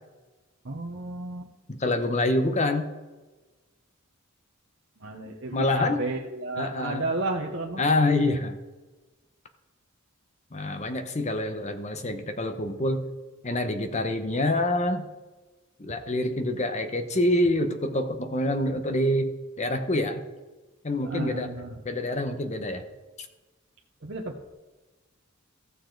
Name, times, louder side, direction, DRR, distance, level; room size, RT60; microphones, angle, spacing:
voice 1, 0.6-1.5 5.0-7.8 21.0-21.7 24.0-24.5, right 2 dB, 55° right, 0 dB, 0.9 m, -32 dB
voice 2, 1.7-2.9 5.5-6.1 6.6-7.1 7.8-8.6 10.5-13.1 13.4-15.1 15.8-20.2 20.8-21.5 21.8-22.8, left 1 dB, 35° left, 8 dB, 0.9 m, -26 dB
15.0 x 6.8 x 3.9 m, 1.2 s
head